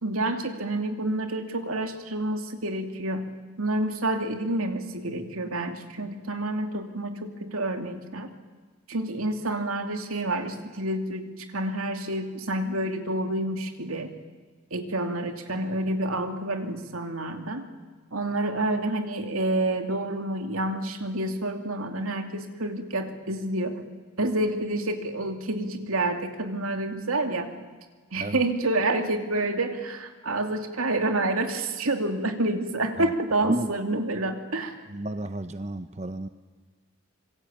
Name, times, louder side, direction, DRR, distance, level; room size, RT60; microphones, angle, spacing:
voice 1, 0.0-3.3 3.6-8.3 8.9-14.1 14.7-17.7 18.1-23.8 24.2-27.5 28.1-34.7, right 2 dB, 85° right, 6 dB, 2.7 m, -28 dB
voice 2, 34.9-36.3, right 1 dB, 30° right, 10 dB, 0.7 m, -30 dB
26.0 x 23.0 x 8.8 m, 1.5 s
head